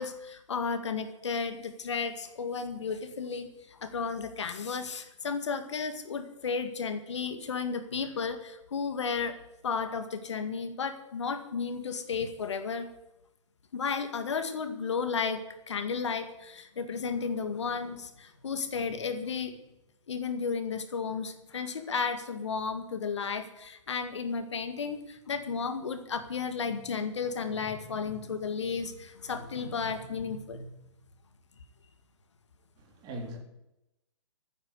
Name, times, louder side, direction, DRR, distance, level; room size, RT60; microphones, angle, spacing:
voice 1, 0.0-9.3 9.6-12.9 13.7-19.5 20.1-30.8, left 5 dB, 60° left, 1.9 m, -33 dB
voice 2, 32.8-33.4, right 1 dB, 25° right, 3.5 m, -40 dB
14.0 x 9.8 x 8.0 m
figure-of-eight pair, 125°, 16 cm